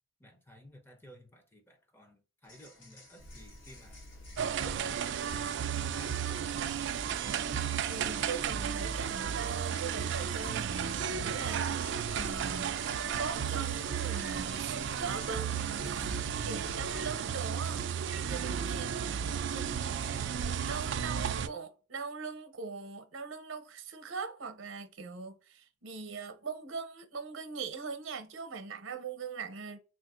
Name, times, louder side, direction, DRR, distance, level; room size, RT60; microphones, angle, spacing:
voice 1, 0.2-4.0 4.4-6.3, left 1 dB, 10° left, 0.5 m, -55 dB
sound 1, 2.4-21.3, left 1 dB, 65° left, 1.3 m, -55 dB
sound 2, 3.2-17.0, left 1 dB, 85° left, 0.9 m, -50 dB
sound 3, 4.4-21.5, right 8 dB, 60° right, 0.3 m, -33 dB
voice 2, 7.6-15.5 15.8-17.9 18.2-19.1 19.5-20.0 20.4-29.8, right 5 dB, 80° right, 0.7 m, -41 dB
3.5 x 2.4 x 2.5 m
head